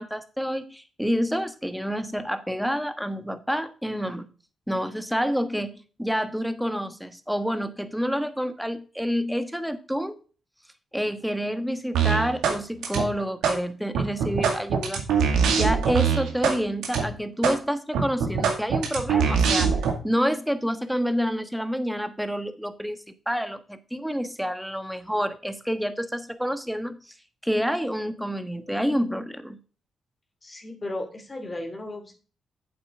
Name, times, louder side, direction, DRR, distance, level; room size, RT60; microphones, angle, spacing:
voice 1, 0.0-4.2 4.7-10.1 10.9-15.0 15.5-19.8 20.0-23.0 23.3-27.1 27.4-29.6, equal, ahead, 9 dB, 1.3 m, -28 dB
sound 1, 11.9-12.6 12.8-13.6 13.9-16.6 16.8-17.0 17.4-17.6 17.9-19.9, right 6 dB, 90° right, 2.1 m, -22 dB
voice 2, 30.4-32.2, left 1 dB, 30° left, 3 dB, 2.4 m, -35 dB
8.5 x 7.8 x 3.6 m, 0.37 s
cardioid pair, 65°, 0 cm